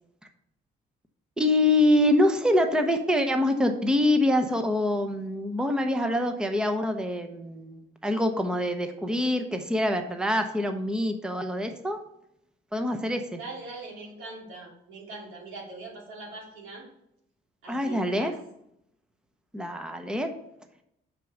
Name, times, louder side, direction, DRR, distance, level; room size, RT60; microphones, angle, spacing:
voice 1, 1.4-12.0 12.7-13.4 17.7-18.3 19.5-20.3, left 1 dB, 5° right, 6 dB, 0.8 m, -25 dB
voice 2, 13.4-16.9 17.6-18.3, right 3 dB, 90° right, -3 dB, 2.6 m, -41 dB
5.8 x 4.6 x 6.4 m, 0.77 s
cardioid pair, 90°, 20 cm